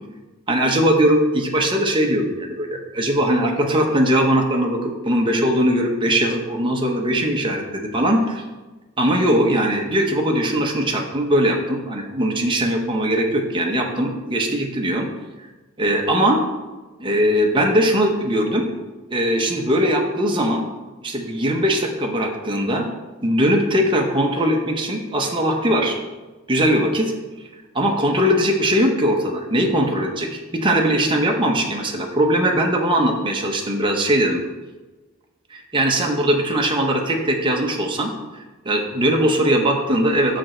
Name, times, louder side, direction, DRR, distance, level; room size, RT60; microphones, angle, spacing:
voice 1, 0.5-7.6 7.9-8.2 9.0-15.1 15.8-16.4 17.0-18.6 19.1-20.6 21.0-22.9 23.2-26.0 26.5-27.1 27.7-34.4 35.5-40.4, equal, 20° right, 1 dB, 0.8 m, -20 dB
6.3 x 5.2 x 4.3 m, 1.2 s
head